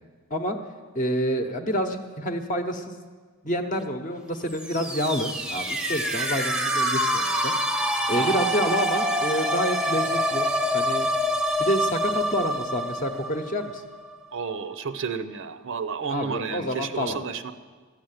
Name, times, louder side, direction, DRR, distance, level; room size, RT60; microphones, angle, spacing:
voice 1, 0.9-3.0 3.4-7.5 8.1-10.5 10.7-11.1 11.6-13.8 16.1-17.2, equal, 35° left, 5 dB, 0.9 m, -28 dB
sound 1, 4.5-14.2, equal, 5° right, 0.5 m, -26 dB
voice 2, 14.3-17.5, right 5 dB, 55° right, 11 dB, 0.6 m, -31 dB
13.0 x 7.5 x 9.1 m, 1.5 s
head